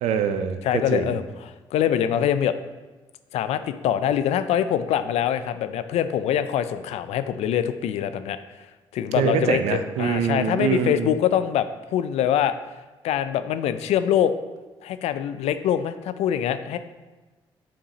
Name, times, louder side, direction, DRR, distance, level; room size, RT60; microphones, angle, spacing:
voice 1, 0.0-1.2 9.2-11.2, right 7 dB, 75° right, 8 dB, 0.5 m, -24 dB
voice 2, 0.6-2.5 3.3-8.4 8.9-12.5 13.0-14.3 14.8-16.8, left 10 dB, 70° left, 11 dB, 0.4 m, -24 dB
7.1 x 4.7 x 2.9 m, 1.2 s
hypercardioid pair, 45°, 11 cm